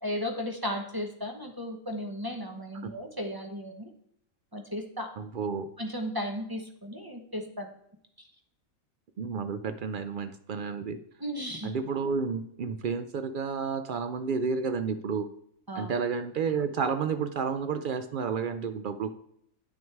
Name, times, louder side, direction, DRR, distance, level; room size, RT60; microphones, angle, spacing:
voice 1, 0.0-3.9 4.5-5.1 5.8-7.7 8.2-8.3 11.2-11.7 15.7-16.0, equal, 20° right, 4 dB, 0.8 m, -35 dB
voice 2, 5.2-5.7 9.2-11.0 11.6-15.3 15.7-19.1, right 5 dB, 70° right, 10 dB, 0.5 m, -31 dB
9.4 x 6.2 x 4.6 m, 0.71 s
omnidirectional pair, 1.4 m